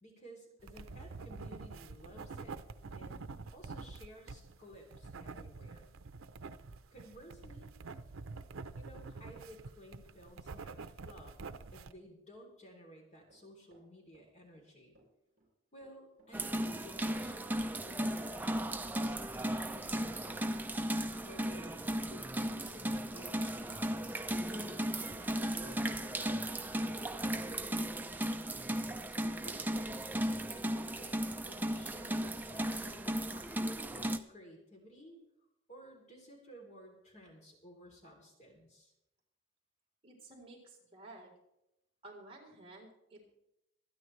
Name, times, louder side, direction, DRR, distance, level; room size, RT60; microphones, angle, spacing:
voice 1, 0.0-2.6 2.9-5.9 6.9-7.7 8.8-11.3 11.7-15.0 15.7-20.5 21.2-23.9 24.4-28.5 29.1-30.1 30.4-35.2 35.7-38.9, equal, 35° left, 0 dB, 3.2 m, -55 dB
sound 1, 0.6-11.9, right 4 dB, 85° right, 0.7 m, -47 dB
Run, 13.3-14.7 14.9-15.5 15.8-17.2 17.4-17.5 17.9-18.0, right 1 dB, 45° right, 6.4 m, -67 dB
sound 2, 16.3-34.2, right 1 dB, 10° right, 0.6 m, -36 dB
voice 2, 40.0-41.3 42.0-43.3, right 2 dB, 30° right, -2 dB, 3.7 m, -54 dB
25.5 x 9.7 x 3.2 m, 0.84 s
head